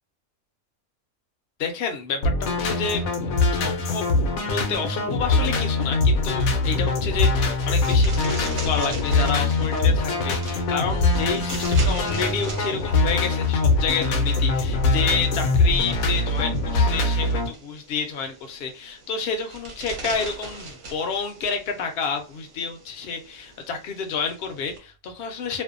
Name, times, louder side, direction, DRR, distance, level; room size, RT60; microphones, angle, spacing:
voice 1, 1.6-3.0 3.5-4.1 4.5-25.6, left 5 dB, 60° left, 0.7 m, -29 dB
sound 1, 2.2-17.5, left 3 dB, 75° left, 1.0 m, -22 dB
sound 2, 6.6-24.8, right 2 dB, 60° right, 1.0 m, -41 dB
2.6 x 2.1 x 2.4 m
omnidirectional pair, 1.5 m